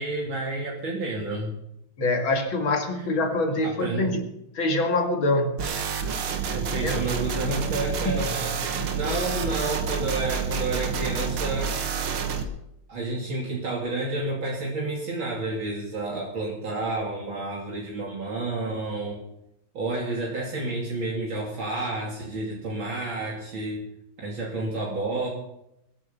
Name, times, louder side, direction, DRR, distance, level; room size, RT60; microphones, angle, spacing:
voice 1, 0.0-1.5 2.9-3.1 3.6-4.1 6.5-11.8 12.9-19.2 19.7-23.8 24.2-25.3, right 2 dB, 70° right, -3 dB, 3.5 m, -30 dB
voice 2, 2.0-4.2 4.5-5.9 6.4-7.0 8.1-8.2 8.7-8.9, left 2 dB, 70° left, 4 dB, 2.9 m, -25 dB
sound 1, 5.6-12.4, right 6 dB, 90° right, 2.4 m, -29 dB
21.5 x 9.5 x 7.0 m, 0.81 s
omnidirectional pair, 2.3 m